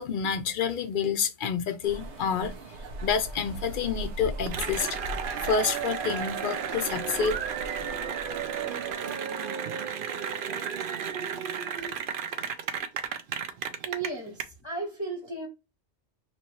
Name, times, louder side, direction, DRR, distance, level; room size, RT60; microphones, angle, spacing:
voice 1, 0.0-2.6 3.0-4.9 5.4-7.4, left 6 dB, 55° left, 0.6 m, -28 dB
sound 1, 1.8-9.1, right 1 dB, 80° right, 1.1 m, -40 dB
Cheering / Applause, 4.5-14.4, right 7 dB, 60° right, 0.6 m, -33 dB
voice 2, 13.8-15.5, right 3 dB, 25° left, 0.9 m, -35 dB
3.0 x 2.9 x 4.3 m
omnidirectional pair, 1.2 m